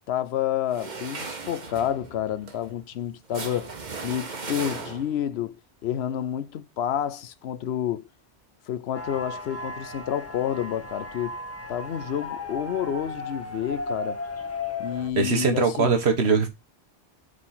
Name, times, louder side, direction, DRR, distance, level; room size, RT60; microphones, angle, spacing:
voice 1, 0.1-3.7 4.0-5.6 5.8-8.0 8.7-11.4 11.7-14.2 14.8-15.9, left 10 dB, 75° left, 0.9 m, -29 dB
sound 1, 0.7-5.3, right 4 dB, 45° right, 1.1 m, -37 dB
sound 2, 8.9-15.1, left 2 dB, 15° left, 1.2 m, -35 dB
voice 2, 15.2-16.5, right 4 dB, 80° right, 1.5 m, -21 dB
4.8 x 4.1 x 5.6 m
omnidirectional pair, 1.1 m